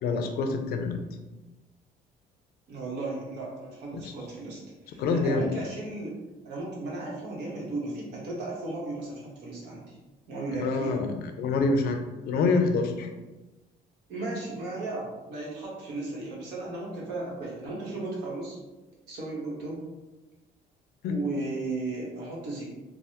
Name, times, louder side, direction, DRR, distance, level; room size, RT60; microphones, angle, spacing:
voice 1, 0.0-1.1 3.9-4.1 5.0-5.5 10.6-13.1 21.0-21.1, left 3 dB, 65° left, 6 dB, 0.4 m, -26 dB
voice 2, 2.7-6.2 6.4-10.0 10.3-11.0 14.1-18.6 19.1-19.8 21.1-22.7, right 2 dB, 80° right, -4 dB, 1.0 m, -35 dB
3.2 x 2.0 x 2.8 m, 1.1 s
cardioid pair, 110°, 17 cm